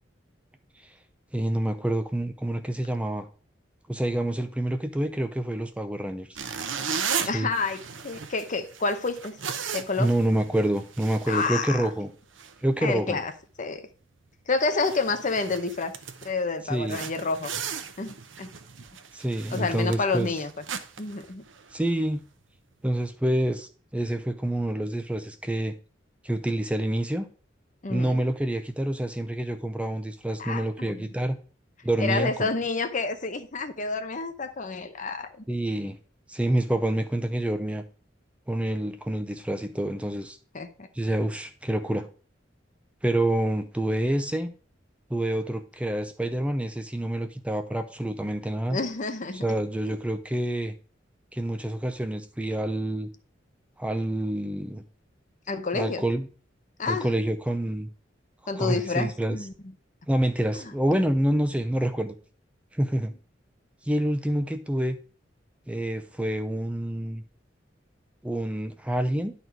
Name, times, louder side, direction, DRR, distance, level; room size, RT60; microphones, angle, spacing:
voice 1, 1.3-3.3 3.9-6.4 7.3-7.5 10.0-12.1 12.6-13.2 16.7-17.0 19.1-20.3 21.7-22.2 22.8-25.7 26.2-27.3 27.9-31.4 31.8-32.5 35.5-36.0 36.3-37.8 38.5-40.4 40.9-42.1 43.0-44.5 45.1-48.8 49.3-50.7 51.3-53.1 53.8-54.8 55.7-56.3 56.9-57.9 58.6-59.4 60.1-62.1 62.7-63.1 63.8-65.0 65.7-67.2 68.2-69.3, right 1 dB, 5° right, 8 dB, 0.5 m, -27 dB
sound 1, 6.4-12.1 12.4-12.6 13.1-13.3 13.7-13.8 14.3-14.4 14.6-16.4 16.9-21.9, right 6 dB, 90° right, 0.8 m, -36 dB
voice 2, 7.3-9.4 9.7-10.1 11.3-11.9 12.8-13.3 13.6-13.9 14.5-15.9 16.2-17.5 18.0-18.5 19.5-20.6 21.0-21.4 27.8-28.2 30.4-31.1 32.0-35.4 40.5-40.9 48.7-49.4 49.9-50.0 55.5-56.0 56.8-57.3 58.5-59.5 60.5-60.7, left 3 dB, 45° left, 8 dB, 0.8 m, -29 dB
11.0 x 4.2 x 4.6 m, 0.39 s
head